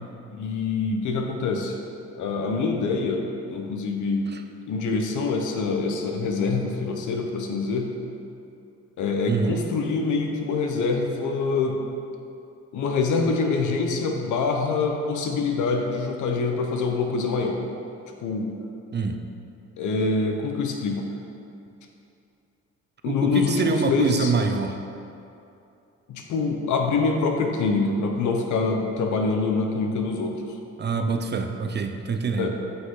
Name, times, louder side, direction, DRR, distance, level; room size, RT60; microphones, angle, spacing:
voice 1, 0.3-1.8 2.2-3.2 3.5-4.3 4.7-7.9 9.0-11.8 12.7-17.6 18.2-18.5 19.8-21.1 23.0-24.3 26.1-30.4 32.4-32.5, left 4 dB, 75° left, 3 dB, 1.0 m, -25 dB
voice 2, 9.3-9.6 18.9-19.2 23.0-24.8 30.8-32.5, right 5 dB, 35° right, 6 dB, 0.6 m, -25 dB
8.3 x 5.6 x 3.8 m, 2.7 s
cardioid pair, 90°, 30 cm